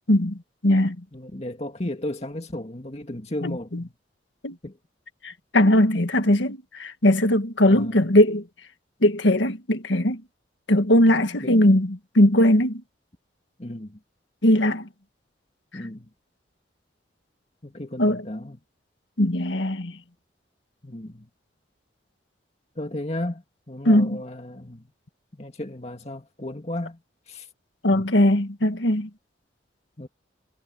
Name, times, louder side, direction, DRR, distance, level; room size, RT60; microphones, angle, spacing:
voice 1, 0.1-1.0 3.4-3.8 4.4-4.6 5.2-8.4 9.0-10.2 10.7-12.8 14.4-14.9 18.0-18.2 19.2-19.9 23.9-24.2 27.8-29.1, left 1 dB, 85° left, 1.8 m, -20 dB
voice 2, 1.1-3.9 4.6-4.8 7.7-8.1 11.4-11.6 13.6-14.0 15.7-16.1 17.6-18.6 20.8-21.3 22.8-24.9 25.3-27.0 27.3-27.5 27.9-28.1 30.0-30.1, left 1 dB, 35° left, 2.2 m, -34 dB
head